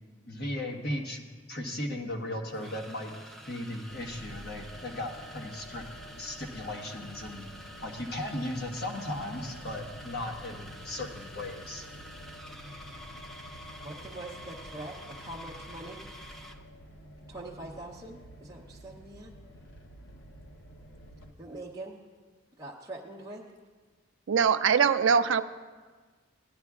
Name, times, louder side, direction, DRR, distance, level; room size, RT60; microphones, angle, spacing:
voice 1, 0.3-3.1 3.5-5.8 6.2-7.5 7.8-11.8, left 1 dB, 50° left, 2 dB, 1.1 m, -36 dB
sound 1, 1.3-1.4 2.5-16.7, equal, ahead, 0.3 m, -48 dB
sound 2, 3.9-21.3, equal, 70° left, 0.8 m, -49 dB
voice 2, 13.8-16.0 17.3-19.3 21.4-22.0 22.6-23.4, right 2 dB, 15° right, -5 dB, 0.7 m, -43 dB
voice 3, 24.3-25.4, right 6 dB, 70° right, 10 dB, 0.4 m, -22 dB
17.0 x 10.5 x 2.4 m, 1.4 s
head